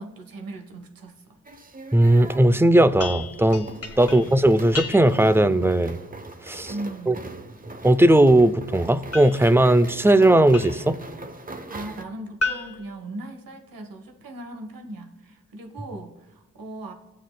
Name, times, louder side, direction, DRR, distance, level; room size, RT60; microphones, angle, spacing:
voice 1, 0.0-1.4 4.0-4.4 6.7-7.3 11.7-16.9, right 2 dB, 75° right, 5 dB, 1.2 m, -38 dB
sound 1, 1.4-12.0, right 2 dB, 25° right, 0.8 m, -41 dB
voice 2, 1.9-3.7 4.0-6.0 6.4-6.7 7.1-7.2 7.8-11.0, right 1 dB, 5° right, 14 dB, 0.4 m, -17 dB
sound 2, 3.0-5.4 9.1-11.0 12.4-13.9, left 3 dB, 45° left, 1.1 m, -35 dB
17.0 x 7.6 x 2.2 m, 0.99 s
cardioid pair, 55°, 34 cm